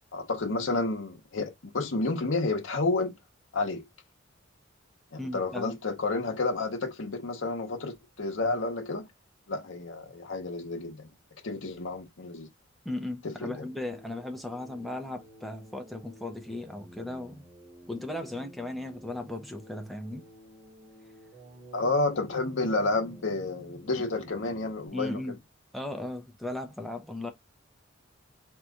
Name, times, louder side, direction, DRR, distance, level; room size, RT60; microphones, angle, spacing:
voice 1, 0.1-3.2 3.5-3.8 5.1-9.1 9.5-11.1 11.4-12.5 13.2-13.7 21.7-25.4, left 3 dB, 70° left, 0.9 m, -30 dB
voice 2, 5.2-5.8 12.8-17.5 17.9-20.3 24.9-25.4 25.7-27.3, left 1 dB, ahead, 0.7 m, -37 dB
sound 1, 13.6-24.9, equal, 25° right, 1.9 m, -52 dB
3.8 x 3.0 x 3.5 m
head